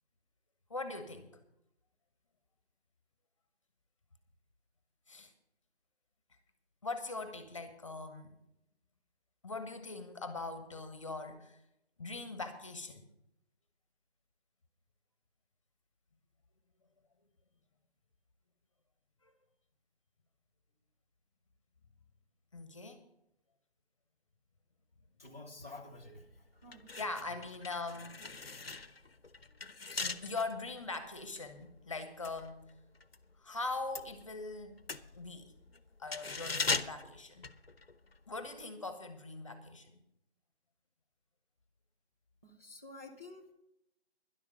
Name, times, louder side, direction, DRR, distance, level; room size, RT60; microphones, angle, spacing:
voice 1, 0.7-1.4 5.1-5.3 6.8-8.3 9.4-11.6 12.0-13.1 19.2-19.3 22.5-23.0 27.0-28.2 30.0-32.7 33.4-34.8 35.1-35.5 36.0-37.5 38.3-39.9, left 3 dB, 30° left, 9 dB, 1.3 m, -41 dB
voice 2, 25.2-26.8 27.3-27.4 42.4-43.5, left 2 dB, 15° right, -5 dB, 0.8 m, -50 dB
sound 1, 26.0-26.2 26.6-33.2 33.5-38.2 38.5-38.6, left 3 dB, 60° left, 0.9 m, -40 dB
12.5 x 11.0 x 5.3 m, 0.81 s
figure-of-eight pair, 160°, 33 cm